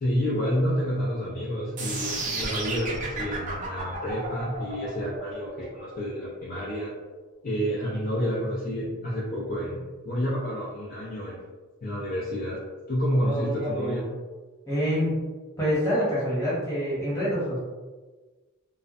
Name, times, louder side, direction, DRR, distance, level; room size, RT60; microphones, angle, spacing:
voice 1, 0.0-6.9 7.4-11.4 11.8-12.6 12.9-14.1, equal, 40° left, -6 dB, 0.4 m, -29 dB
sound 1, 1.8-7.8, right 3 dB, 35° right, 0.5 m, -33 dB
voice 2, 13.2-14.0 14.7-15.2 15.6-17.6, equal, 15° left, -9 dB, 1.0 m, -26 dB
2.4 x 2.1 x 2.5 m, 1.3 s
head